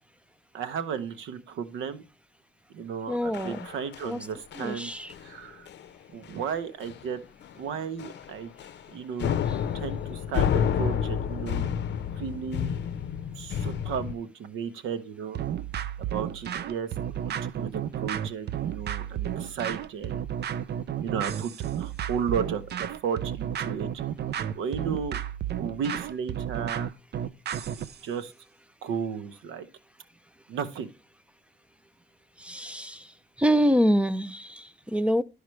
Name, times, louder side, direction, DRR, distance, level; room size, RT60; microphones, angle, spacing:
voice 1, 0.5-2.0 2.7-4.9 5.2-5.7 6.1-7.2 7.6-8.5 8.9-9.4 9.7-11.7 12.2-12.7 13.4-15.4 16.1-20.2 21.0-23.9 24.5-25.2 25.6-26.9 28.0-28.3 28.8-29.7 30.5-30.9, right 7 dB, 85° right, 1.0 m, -34 dB
voice 2, 3.1-3.6 4.0-4.2 4.6-5.1 32.4-33.1 33.4-35.2, equal, 5° right, 0.6 m, -25 dB
sound 1, 3.3-4.2 4.5-4.8 5.1-5.4 5.7-5.9 6.2-6.3 6.8-7.2 7.4-7.6 8.0-8.9 9.2-14.2, left 8 dB, 60° left, 0.7 m, -30 dB
sound 2, 15.4-28.0, right 10 dB, 55° right, 0.6 m, -32 dB
11.5 x 4.9 x 3.2 m
cardioid pair, 90°, 20 cm